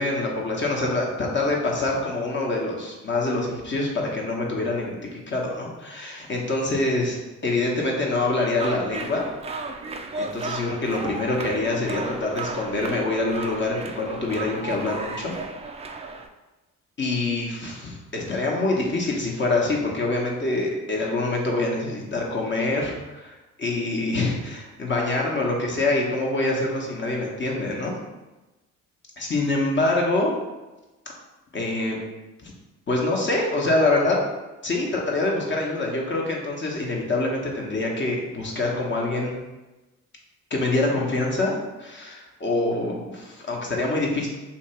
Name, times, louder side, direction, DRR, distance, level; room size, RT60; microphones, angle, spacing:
voice 1, 0.0-7.2 7.4-9.3 10.2-15.4 17.0-28.0 29.2-30.3 31.5-32.0 32.4-32.5 32.9-34.2 34.6-39.3 40.5-44.3, left 2 dB, 40° left, -1 dB, 1.0 m, -25 dB
sound 1, 8.6-16.3, right 3 dB, 20° right, 0.3 m, -34 dB
2.8 x 2.8 x 4.3 m, 1.1 s
cardioid pair, 90°, 30 cm